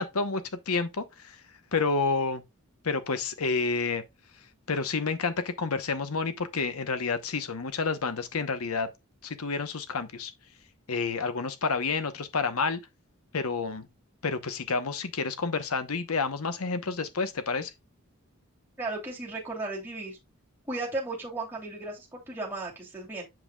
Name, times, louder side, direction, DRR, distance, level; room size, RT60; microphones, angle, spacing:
voice 1, 0.0-1.4 1.7-2.4 2.8-4.0 4.7-8.9 9.2-10.3 10.9-12.8 13.3-13.9 14.2-17.7, left 4 dB, 80° left, 0.9 m, -29 dB
voice 2, 18.8-20.2 20.7-23.3, right 2 dB, 10° right, 2.8 m, -35 dB
7.7 x 5.5 x 2.3 m
head